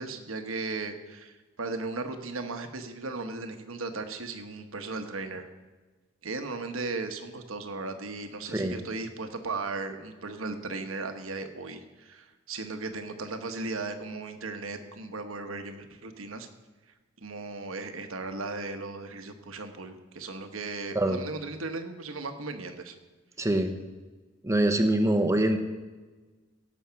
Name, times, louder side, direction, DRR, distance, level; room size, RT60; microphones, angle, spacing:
voice 1, 0.0-5.5 6.2-16.5 17.2-22.9, right 3 dB, 90° right, 7 dB, 1.1 m, -36 dB
voice 2, 8.5-8.8 20.9-21.2 23.4-23.8 24.4-25.6, right 1 dB, 15° right, 6 dB, 0.8 m, -24 dB
16.5 x 6.3 x 5.8 m, 1.3 s
head